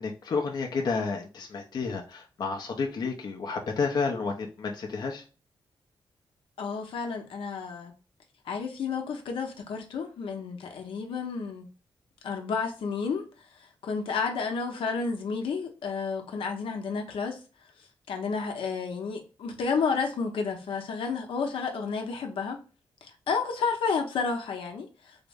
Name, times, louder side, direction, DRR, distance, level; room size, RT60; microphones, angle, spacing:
voice 1, 0.0-5.2, left 4 dB, 50° left, 0.5 m, -31 dB
voice 2, 6.6-7.9 8.5-11.7 12.2-13.2 13.8-17.4 18.1-22.6 23.3-24.9, left 5 dB, 90° left, 0.7 m, -31 dB
3.6 x 2.0 x 3.4 m
wide cardioid pair, 145°, 9 cm